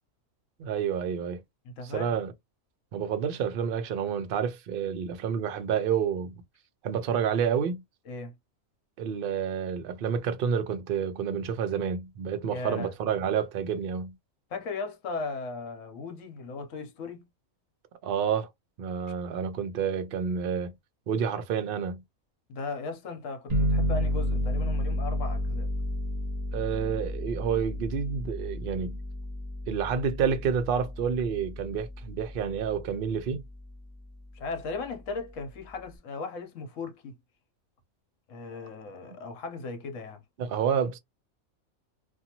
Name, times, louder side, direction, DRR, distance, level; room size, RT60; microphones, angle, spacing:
voice 1, 0.6-1.4 1.8-2.3 2.9-6.4 6.8-7.8 9.0-14.1 18.0-18.5 18.8-20.7 21.1-22.0 26.5-29.0 29.7-33.4 40.4-41.0, right 7 dB, 60° right, 0.6 m, -29 dB
voice 2, 1.6-2.1 8.1-8.3 12.4-12.9 14.5-17.3 22.5-25.7 34.3-37.2 38.3-40.2, left 3 dB, 70° left, 1.1 m, -37 dB
sound 1, 23.5-32.8, equal, 30° right, 0.9 m, -31 dB
2.6 x 2.3 x 2.8 m
omnidirectional pair, 1.4 m